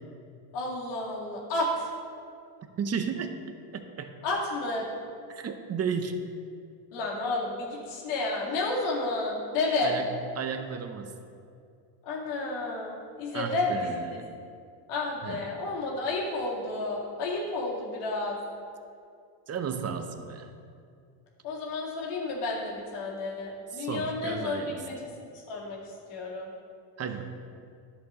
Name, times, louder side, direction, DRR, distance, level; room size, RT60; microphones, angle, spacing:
voice 1, 0.5-1.9 4.2-4.9 6.9-10.0 12.0-14.2 14.9-18.4 21.4-25.1 25.5-26.5, left 2 dB, 85° left, -4 dB, 2.2 m, -31 dB
voice 2, 2.8-3.4 3.7-4.1 5.3-6.2 9.8-10.1 10.4-11.1 13.3-14.2 15.2-15.5 19.5-20.5 23.7-24.8 27.0-27.2, right 6 dB, 30° right, 7 dB, 0.7 m, -33 dB
10.5 x 7.0 x 3.1 m, 2.4 s
supercardioid pair, 100°, 49 cm